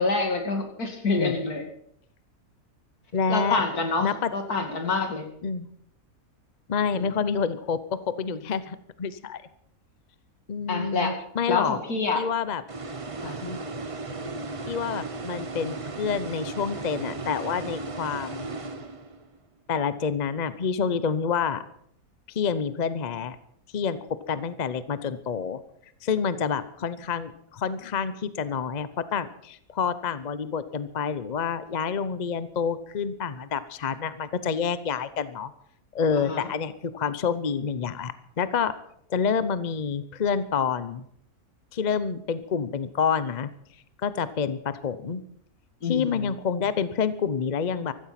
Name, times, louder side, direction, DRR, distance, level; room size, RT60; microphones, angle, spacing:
voice 1, 0.0-1.6 3.3-5.3 6.9-7.1 10.7-11.1 11.5-12.2 13.2-13.4 36.2-36.5 45.8-46.3, left 3 dB, 80° left, 4 dB, 2.9 m, -27 dB
voice 2, 3.1-3.6 4.0-4.3 5.4-5.7 6.7-9.4 10.5-11.8 12.1-12.6 13.4-13.6 14.7-18.5 19.7-21.6 22.3-23.4 23.7-24.0 24.3-25.6 26.0-35.5 35.9-38.7 39.1-41.1 41.7-43.5 44.0-45.2 45.8-47.9, left 6 dB, 40° left, 14 dB, 0.7 m, -28 dB
sound 1, 12.7-19.4, right 3 dB, 30° right, 0.8 m, -35 dB
16.0 x 14.0 x 5.9 m, 0.70 s
omnidirectional pair, 1.6 m